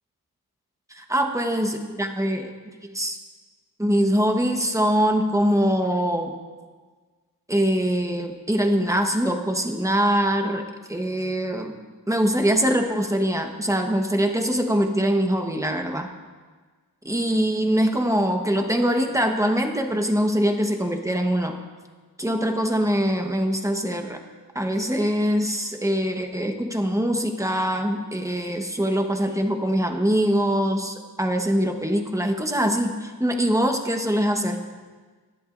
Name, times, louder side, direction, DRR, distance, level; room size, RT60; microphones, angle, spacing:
voice 1, 0.9-2.5 2.8-3.2 3.8-6.3 7.5-11.7 12.1-16.1 17.0-21.6 22.2-24.2 24.5-34.6, equal, 10° right, 4 dB, 1.3 m, -23 dB
24.0 x 11.0 x 2.6 m, 1.4 s
wide cardioid pair, 80°, 40 cm